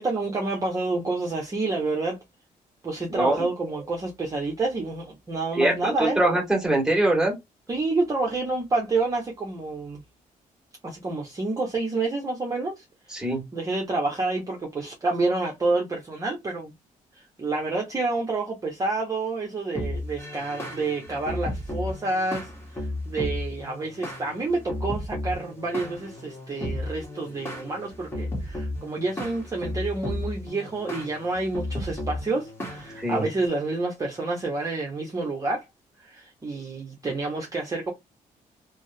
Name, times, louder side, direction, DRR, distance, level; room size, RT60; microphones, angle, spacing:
voice 1, 0.0-2.2 2.8-6.2 7.7-10.0 10.8-16.7 17.1-35.7 36.0-37.9, right 3 dB, 25° right, 0.7 m, -29 dB
voice 2, 3.1-3.5 5.6-7.3 13.1-13.4 33.0-33.2, right 1 dB, 5° right, 1.6 m, -23 dB
sound 1, 19.7-33.5, left 1 dB, 15° left, 1.1 m, -34 dB
3.4 x 2.0 x 2.7 m
cardioid pair, 125°, 14 cm